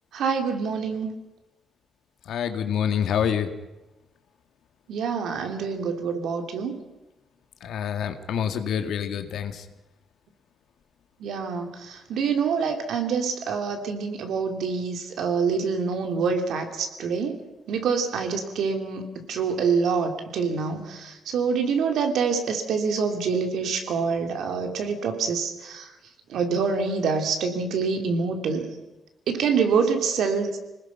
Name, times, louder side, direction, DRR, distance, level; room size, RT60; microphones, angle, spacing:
voice 1, 0.1-1.1 4.9-6.7 11.2-17.4 17.7-25.9 26.3-28.7 29.3-30.6, right 5 dB, 75° right, 5 dB, 3.1 m, -26 dB
voice 2, 2.3-3.5 7.6-9.7, left 8 dB, 75° left, 7 dB, 2.0 m, -27 dB
27.0 x 19.5 x 5.9 m, 1.0 s
cardioid pair, 160°, 0 cm